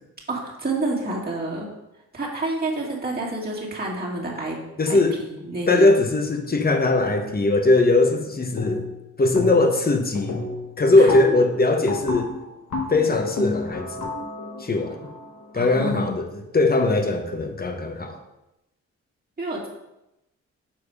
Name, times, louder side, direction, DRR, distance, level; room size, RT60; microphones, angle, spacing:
voice 1, 0.3-1.7 2.1-4.6 4.9-5.9 11.0-11.2 15.5-16.2 19.4-19.7, right 2 dB, 30° right, -4 dB, 2.2 m, -28 dB
voice 2, 4.8-5.2 5.7-8.8 9.2-10.4 10.8-12.3 12.9-14.1 14.6-15.1 15.5-16.3 16.5-18.2, left 2 dB, 30° left, 5 dB, 1.1 m, -20 dB
sound 1, 8.6-9.0 9.3-9.8 10.1-16.0, left 3 dB, 90° left, 1.9 m, -31 dB
7.3 x 4.7 x 4.9 m, 0.91 s
cardioid pair, 80°, 29 cm